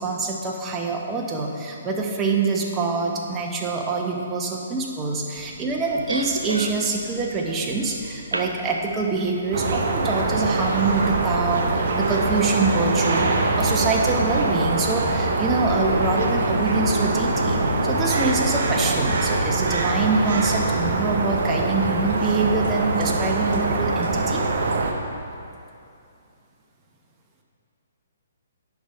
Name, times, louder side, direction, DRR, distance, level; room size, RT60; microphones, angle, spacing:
voice 1, 0.0-11.7 11.9-24.4, right 3 dB, 15° right, 0 dB, 0.9 m, -25 dB
sound 1, 5.4-24.7, left 3 dB, 70° left, 0.5 m, -36 dB
voice 2, 6.1-6.7 8.3-8.5 24.7-25.0, right 2 dB, 85° right, 5 dB, 0.5 m, -29 dB
sound 2, 9.5-24.9, right 3 dB, 55° right, 0.7 m, -23 dB
10.5 x 3.6 x 5.1 m, 2.5 s
figure-of-eight pair, 130°, 0 cm